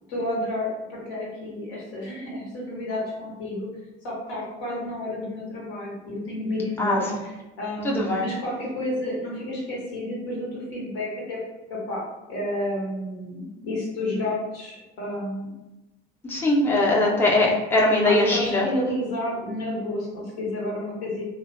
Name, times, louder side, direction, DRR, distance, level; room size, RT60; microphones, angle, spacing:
voice 1, 0.1-3.7 4.0-11.4 11.7-15.6 17.0-17.1 18.0-21.3, left 1 dB, 75° left, -4 dB, 1.0 m, -31 dB
voice 2, 7.8-8.2 16.3-18.7, left 2 dB, 5° left, -3 dB, 0.6 m, -21 dB
2.5 x 2.2 x 2.5 m, 1.1 s
hypercardioid pair, 60°, 32 cm